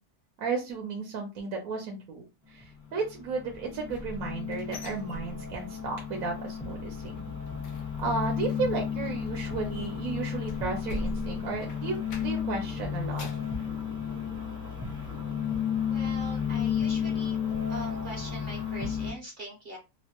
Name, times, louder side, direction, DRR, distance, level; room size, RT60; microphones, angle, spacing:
voice 1, 0.4-7.3 8.0-13.3 13.5-13.6, right 4 dB, 70° right, 2 dB, 1.0 m, -34 dB
sound 1, 2.6-19.1, left 8 dB, 5° right, 0.4 m, -33 dB
sound 2, 3.5-5.9 6.2-6.5 6.8-12.6 12.9-13.5 14.0-14.1 14.6-14.7, right 1 dB, 65° left, 0.7 m, -43 dB
voice 2, 15.9-17.4 17.7-19.8, right 2 dB, 45° right, -3 dB, 0.7 m, -42 dB
3.0 x 2.1 x 2.9 m, 0.26 s
omnidirectional pair, 1.7 m